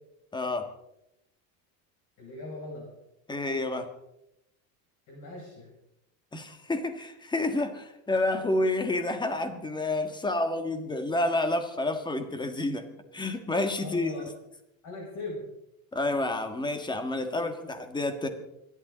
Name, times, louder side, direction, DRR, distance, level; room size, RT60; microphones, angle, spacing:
voice 1, 0.3-0.7 3.3-3.9 6.3-12.9 13.1-14.1 15.9-18.3, left 2 dB, 10° left, 8 dB, 1.6 m, -29 dB
voice 2, 2.2-2.9 5.1-5.7 13.8-14.3 14.8-15.4, left 2 dB, 50° left, -3 dB, 7.2 m, -39 dB
26.0 x 11.5 x 4.1 m, 0.83 s
cardioid pair, 140°, 40 cm